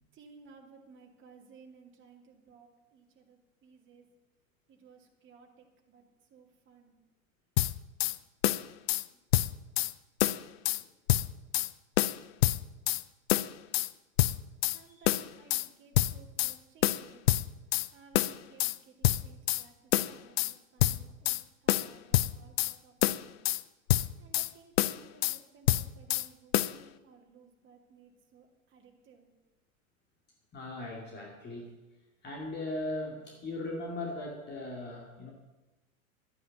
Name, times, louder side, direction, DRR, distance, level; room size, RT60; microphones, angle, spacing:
voice 1, 0.1-4.1 4.7-6.0 6.3-7.0 14.7-17.3 17.9-23.4 24.2-29.3, right 5 dB, 30° right, 1 dB, 2.5 m, -58 dB
sound 1, 7.6-8.2 8.4-9.0 9.3-9.9 10.2-10.8 11.1-11.7 12.0-13.0 13.3-13.9 14.2-14.8 15.1-15.7 16.0-16.5 16.8-17.9 18.1-18.8 19.0-19.6 19.9-20.5 20.8-21.4 21.7-22.7 23.0-23.6 23.9-24.5 24.8-25.4 25.7-26.3 26.5-26.8, left 15 dB, 45° left, 0.5 m, -27 dB
voice 2, 30.5-31.7 32.2-35.3, left 2 dB, 25° left, -1 dB, 2.4 m, -38 dB
12.0 x 9.4 x 7.7 m, 1.1 s
figure-of-eight pair, 95°, 42 cm